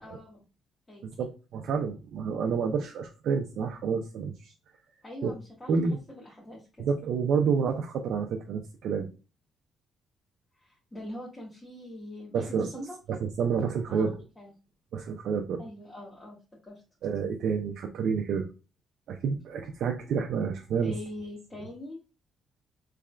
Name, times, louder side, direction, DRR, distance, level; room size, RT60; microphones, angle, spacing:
voice 1, 0.0-0.4 0.9-1.2 5.0-5.7 6.1-6.9 10.6-13.0 13.9-14.5 15.6-16.4 16.7-16.8 20.8-22.0, left 1 dB, 20° left, -4 dB, 1.2 m, -43 dB
voice 2, 1.0-4.5 5.2-5.3 5.7-6.0 6.8-9.1 12.3-12.7 13.1-14.2 14.9-15.6 17.0-18.5 19.1-20.9, right 6 dB, 70° right, 3 dB, 0.4 m, -29 dB
3.6 x 3.2 x 2.2 m, 0.32 s
cardioid pair, 90°, 0 cm